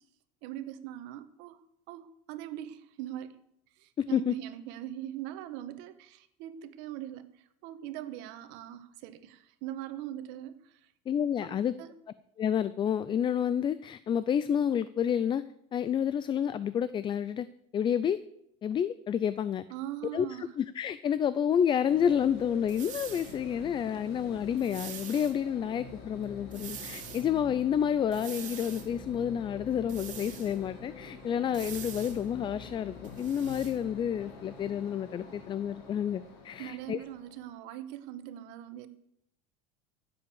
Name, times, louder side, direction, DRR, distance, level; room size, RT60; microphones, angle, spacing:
voice 1, 0.4-1.6 1.9-3.3 3.8-10.9 11.4-12.0 19.7-20.5 36.6-38.9, right 12 dB, 65° right, 11 dB, 1.5 m, -41 dB
voice 2, 4.0-4.3 11.1-11.7 12.4-15.4 15.7-17.5 17.7-18.2 18.6-19.6 20.1-37.0, left 8 dB, 25° left, 15 dB, 0.4 m, -29 dB
sound 1, 21.9-37.5, left 2 dB, 55° left, 4.3 m, -49 dB
sound 2, 22.7-23.4 24.6-25.3 26.5-27.3 28.1-28.9 29.9-30.6 31.5-32.2 33.0-33.7, right 9 dB, 40° right, 2.7 m, -44 dB
sound 3, 23.1-34.3, left 6 dB, 80° left, 2.6 m, -49 dB
15.0 x 7.9 x 7.0 m, 0.75 s
supercardioid pair, 135°, 20 cm